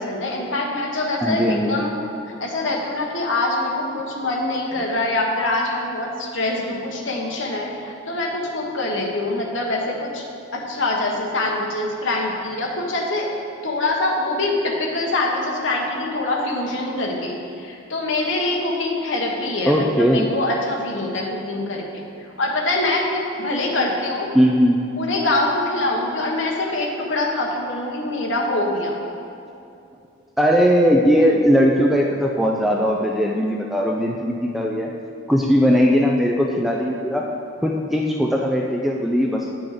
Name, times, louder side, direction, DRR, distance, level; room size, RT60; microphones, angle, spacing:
voice 1, 0.0-2.0 2.3-10.3 10.5-13.3 13.6-24.3 25.0-29.0, left 2 dB, 70° left, -1 dB, 1.2 m, -24 dB
voice 2, 1.2-1.8 19.7-20.3 24.3-24.8 30.4-34.9 35.3-37.3 37.6-39.5, equal, ahead, -1 dB, 0.3 m, -19 dB
8.5 x 6.2 x 5.0 m, 2.5 s
head